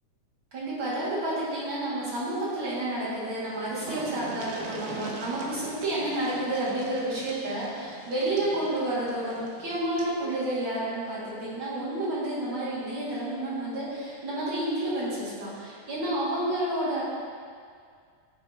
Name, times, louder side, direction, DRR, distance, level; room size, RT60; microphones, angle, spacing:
voice 1, 0.5-17.0, right 1 dB, 40° right, -10 dB, 2.3 m, -30 dB
sound 1, 3.1-3.2 3.4-10.2 11.5-11.6 12.0-12.1, right 3 dB, 90° right, 1.4 m, -42 dB
12.0 x 4.3 x 2.8 m, 2.2 s
omnidirectional pair, 3.9 m